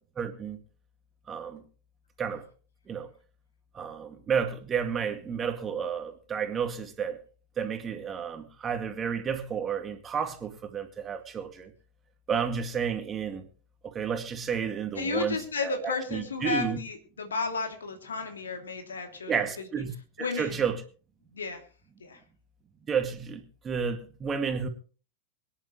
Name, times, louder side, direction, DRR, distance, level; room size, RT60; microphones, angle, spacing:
voice 1, 0.2-0.6 1.3-1.6 2.2-2.4 2.9-3.1 3.7-7.2 7.6-11.7 12.3-13.5 13.9-16.8 19.3-19.9 20.2-20.8 22.9-24.7, right 7 dB, 20° right, 7 dB, 2.1 m, -31 dB
voice 2, 15.0-19.3 20.2-20.6 21.3-21.6 22.0-22.2, left 4 dB, 70° left, 5 dB, 2.8 m, -33 dB
23.5 x 10.5 x 3.1 m, 0.37 s
figure-of-eight pair, 90°, 0 cm